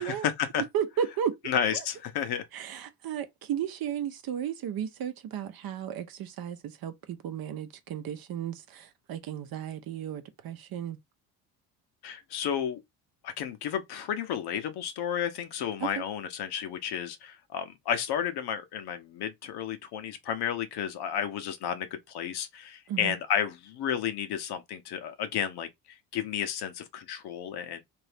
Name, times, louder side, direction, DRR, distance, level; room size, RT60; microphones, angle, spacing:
voice 1, 0.0-0.6 1.4-2.5 12.0-12.8 13.2-27.8, left 8 dB, 60° left, 0.9 m, -32 dB
voice 2, 0.6-1.4 1.7-1.8 2.5-11.0 15.8-16.0 22.9-23.1, right 9 dB, 50° right, 0.8 m, -34 dB
2.7 x 2.6 x 3.4 m
hypercardioid pair, 65°, 45 cm